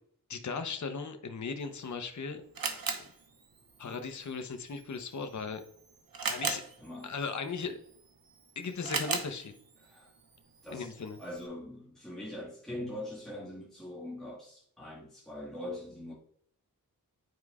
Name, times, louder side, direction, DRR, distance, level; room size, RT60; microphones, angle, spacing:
voice 1, 0.3-2.4 3.8-5.6 6.3-6.6 7.0-7.8 8.6-9.5 10.7-11.2, left 5 dB, 50° left, 0.8 m, -37 dB
Camera, 1.6-11.5, right 4 dB, 65° right, 1.1 m, -40 dB
voice 2, 6.4-7.1 9.8-10.1 10.6-10.9 11.2-16.1, left 1 dB, ahead, 1.7 m, -42 dB
9.5 x 4.7 x 2.4 m
cardioid pair, 50°, 37 cm